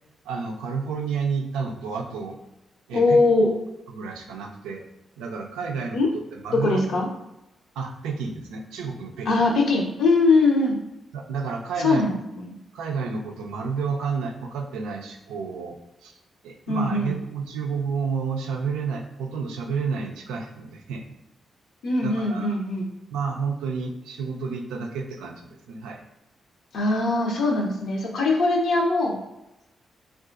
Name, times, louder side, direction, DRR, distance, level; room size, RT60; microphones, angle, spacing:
voice 1, 0.3-2.4 2.9-3.2 3.9-4.8 5.2-6.0 6.3-6.8 7.8-9.5 11.1-12.1 12.7-15.8 16.0-16.1 16.4-21.1 22.0-22.6 23.1-26.0, right 5 dB, 85° right, 3 dB, 0.4 m, -30 dB
voice 2, 2.9-3.5 5.9-6.1 6.5-7.1 9.3-10.8 11.8-12.1 12.4-12.6 16.7-17.1 21.8-22.9 26.7-29.2, left 3 dB, 75° left, 1 dB, 0.6 m, -21 dB
3.5 x 2.3 x 2.4 m, 0.93 s
supercardioid pair, 45°, 0 cm